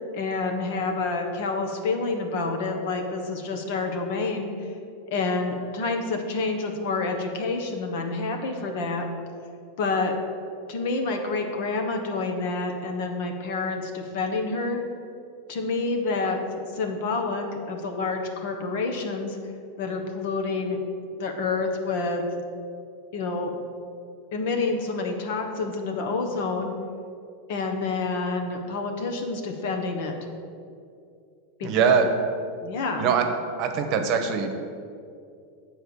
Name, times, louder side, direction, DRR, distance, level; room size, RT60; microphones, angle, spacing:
voice 1, 0.0-4.7 5.1-9.0 9.8-10.2 10.7-14.8 15.5-19.4 19.8-20.8 21.2-22.2 23.1-23.5 24.3-26.7 27.5-30.1 31.6-31.7 32.6-33.1, left 3 dB, 65° left, 3 dB, 1.2 m, -28 dB
voice 2, 31.6-32.1 33.0-33.3 33.6-34.6, right 6 dB, 50° right, 6 dB, 1.0 m, -22 dB
7.8 x 4.4 x 7.0 m, 2.4 s
supercardioid pair, 120°, 0 cm